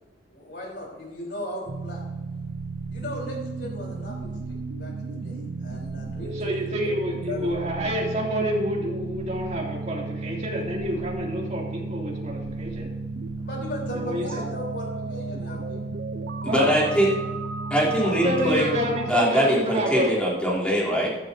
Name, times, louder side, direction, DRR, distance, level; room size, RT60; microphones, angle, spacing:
voice 1, 0.3-2.1 2.9-6.9 7.2-7.5 13.4-15.8 17.7-17.9, left 1 dB, 70° left, -1 dB, 4.0 m, -37 dB
sound 1, 1.7-19.1, right 3 dB, 65° right, 0.7 m, -33 dB
voice 2, 6.3-12.9 13.9-14.4 16.4-16.7 18.0-20.1, equal, 40° right, -3 dB, 2.8 m, -28 dB
voice 3, 16.4-17.1 17.7-18.8 19.1-21.1, equal, 5° left, -6 dB, 3.4 m, -22 dB
15.0 x 11.5 x 2.8 m, 1.2 s
head